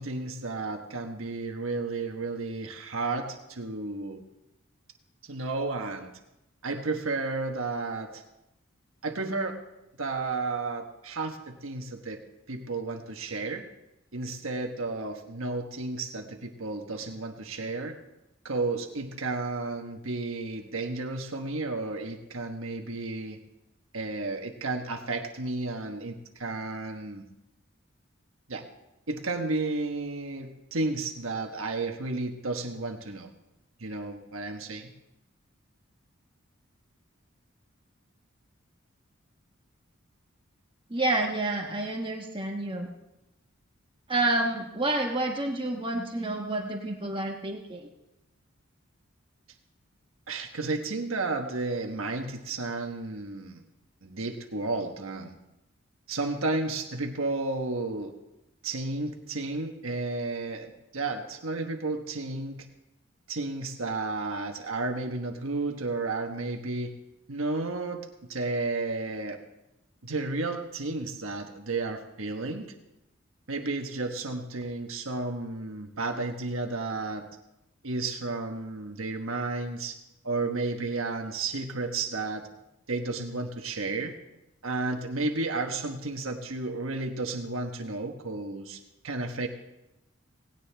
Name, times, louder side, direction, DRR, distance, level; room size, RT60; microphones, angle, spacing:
voice 1, 0.0-4.2 5.2-6.1 6.6-8.2 9.0-9.6 10.0-12.2 12.5-13.7 14.1-18.0 18.4-23.4 23.9-27.3 28.5-28.6 29.1-33.3 33.8-34.9 50.3-53.6 54.0-55.3 56.1-58.1 58.6-62.7 63.3-66.9 67.3-69.4 70.0-72.7 73.5-77.3 77.8-80.0 80.2-82.4 82.9-84.1 84.6-88.8 89.0-89.5, right 3 dB, 85° right, 4 dB, 1.3 m, -32 dB
voice 2, 40.9-42.9 44.1-47.9, right 2 dB, 25° right, 2 dB, 1.3 m, -29 dB
18.0 x 17.5 x 3.5 m, 0.91 s
head